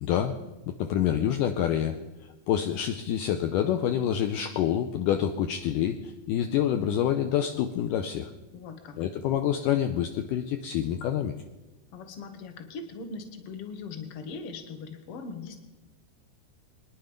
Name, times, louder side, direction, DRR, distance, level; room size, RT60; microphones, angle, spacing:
voice 1, 0.0-0.4 0.8-2.0 2.5-8.3 9.0-11.3, left 10 dB, 80° left, 6 dB, 1.9 m, -27 dB
voice 2, 8.5-9.0 11.9-15.6, left 4 dB, 55° left, 7 dB, 1.7 m, -40 dB
24.5 x 10.5 x 5.3 m, 1.1 s
omnidirectional pair, 4.6 m